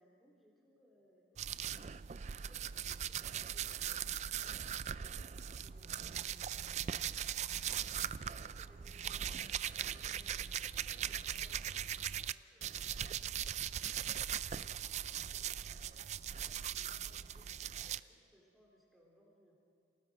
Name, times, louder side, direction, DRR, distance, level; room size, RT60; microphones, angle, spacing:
voice 1, 0.0-1.6 2.2-4.2 5.6-7.4 7.8-11.3 12.5-13.4 14.5-19.5, equal, ahead, -3 dB, 3.6 m, -67 dB
sound 1, 1.4-12.3 12.6-18.0, right 9 dB, 40° right, 0.4 m, -40 dB
voice 2, 8.2-8.7 10.8-12.5 12.9-13.0 17.0-17.5, equal, 60° left, 0 dB, 5.9 m, -67 dB
28.0 x 18.5 x 5.1 m, 2.6 s
head